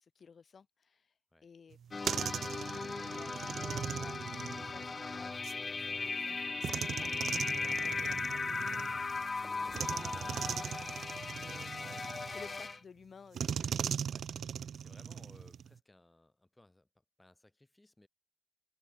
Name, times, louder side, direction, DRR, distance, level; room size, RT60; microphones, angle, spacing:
voice 1, 0.0-9.2 9.6-10.3 11.4-11.9 12.2-13.7, left 6 dB, 45° left, 2.4 m, -56 dB
sound 1, 1.7-5.6 6.6-9.2 9.7-12.6 13.3-15.8, right 8 dB, 60° right, 0.3 m, -39 dB
sound 2, 1.9-12.8, left 4 dB, 30° left, 1.1 m, -37 dB
Thunder, 6.5-11.3, right 1 dB, 5° right, 6.3 m, -59 dB
voice 2, 10.9-12.4 14.1-14.3 14.6-16.9 17.2-18.1, left 1 dB, 10° left, 6.2 m, -63 dB
cardioid pair, 105°, 0 cm